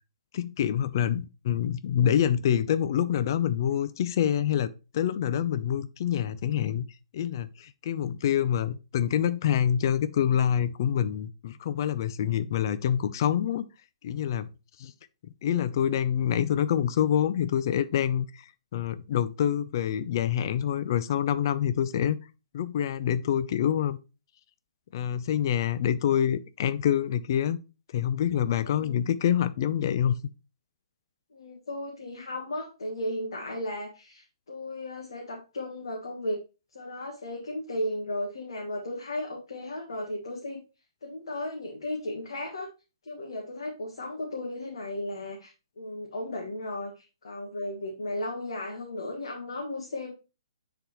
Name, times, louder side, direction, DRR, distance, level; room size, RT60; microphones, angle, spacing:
voice 1, 0.3-6.9 7.1-13.7 14.0-14.5 14.8-14.9 15.4-18.4 18.7-22.2 22.5-24.0 24.9-27.6 27.9-30.2, left 9 dB, 45° left, 0.5 m, -26 dB
voice 2, 28.6-29.0 31.3-36.4 36.7-40.6 41.0-42.7 43.0-50.1, left 1 dB, 65° left, 1.7 m, -35 dB
9.7 x 4.1 x 3.0 m
figure-of-eight pair, 130°, 3 cm